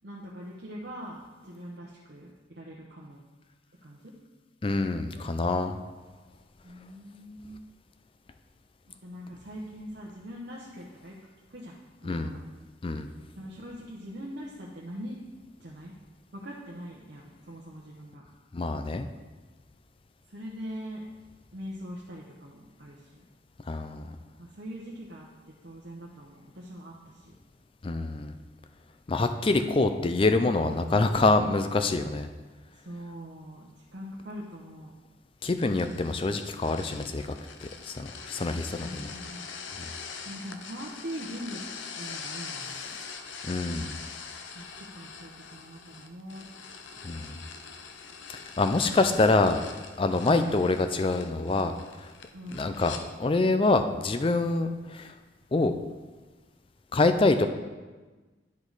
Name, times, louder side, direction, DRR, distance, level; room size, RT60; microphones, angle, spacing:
voice 1, 0.0-3.2 3.8-4.1 6.6-7.6 9.0-11.2 11.5-11.7 12.0-12.4 13.3-15.2 15.6-15.9 16.3-18.2 20.3-21.0 21.5-23.2 24.4-25.3 25.6-27.3 32.7-35.0 38.4-39.6 40.2-41.6 41.9-43.0 44.5-46.4 52.3-52.7, equal, 55° right, -4 dB, 0.9 m, -42 dB
voice 2, 4.6-5.8 12.1-12.3 12.8-13.1 18.5-19.1 23.7-24.2 27.8-28.3 29.1-32.3 35.4-37.2 37.9-39.1 43.4-44.0 47.0-47.4 48.6-49.6 50.0-51.7 52.0-52.1 52.5-55.1 55.5-55.7 56.9-57.5, left 3 dB, 30° left, 8 dB, 0.4 m, -25 dB
sound 1, 35.5-53.0, left 5 dB, 80° left, 0.6 m, -43 dB
10.5 x 5.1 x 4.0 m, 1.3 s
head